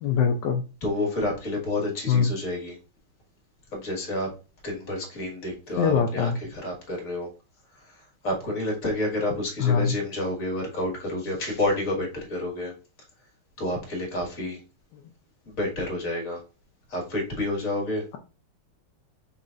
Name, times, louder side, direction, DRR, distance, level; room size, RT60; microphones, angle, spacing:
voice 1, 0.0-0.6 2.1-2.3 5.8-6.4 9.6-9.9, left 6 dB, 75° left, 3 dB, 1.0 m, -22 dB
voice 2, 0.8-2.8 3.7-4.3 4.6-7.3 7.8-12.7 13.6-14.6 15.5-16.4 16.9-18.0, left 1 dB, 40° left, 0 dB, 1.9 m, -29 dB
5.4 x 3.9 x 2.5 m, 0.32 s
omnidirectional pair, 2.4 m